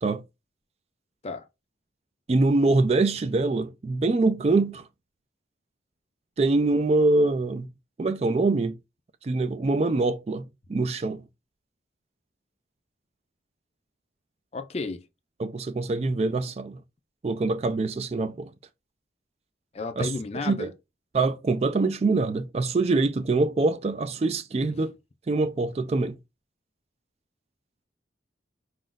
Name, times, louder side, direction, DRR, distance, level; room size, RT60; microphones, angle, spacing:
voice 1, 2.3-4.8 6.4-7.7 8.0-8.8 9.2-11.2 15.4-16.8 17.2-18.5 20.0-20.1 20.4-20.7 21.1-24.9 25.3-26.2, right 3 dB, 35° right, 0.3 m, -24 dB
voice 2, 14.5-15.0 19.7-20.7, left 3 dB, 35° left, 0.5 m, -32 dB
5.1 x 2.5 x 3.8 m
head